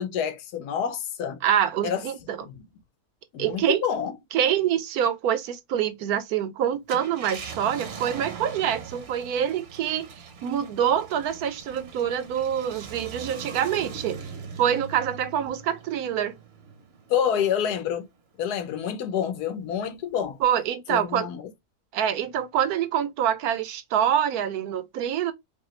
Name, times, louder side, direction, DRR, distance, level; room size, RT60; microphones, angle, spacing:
voice 1, 0.0-1.4 1.8-2.0 2.4-2.6 3.3-4.1 17.1-18.1 18.4-20.4 20.9-21.5, left 8 dB, 90° left, 1.3 m, -28 dB
voice 2, 1.4-2.4 3.4-3.8 4.3-14.3 14.6-16.3 20.4-21.3 21.9-25.3, right 9 dB, 80° right, 1.2 m, -26 dB
Car, 6.7-17.6 18.1-18.2 20.2-20.4, right 5 dB, 50° right, 0.9 m, -41 dB
4.8 x 2.3 x 3.0 m
omnidirectional pair, 1.6 m